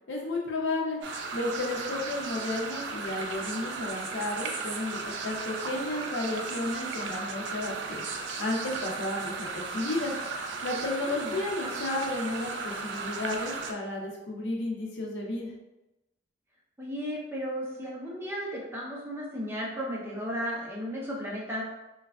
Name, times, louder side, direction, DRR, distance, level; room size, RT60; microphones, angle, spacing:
voice 1, 0.1-1.0 1.3-8.0 8.4-10.1 10.6-15.5, left 2 dB, 80° left, -1 dB, 0.6 m, -32 dB
sound 1, 1.0-13.7, right 4 dB, 70° right, 0.4 m, -36 dB
voice 2, 10.9-11.4 16.8-21.6, equal, 15° right, -4 dB, 0.4 m, -35 dB
3.2 x 2.2 x 2.3 m, 0.99 s
head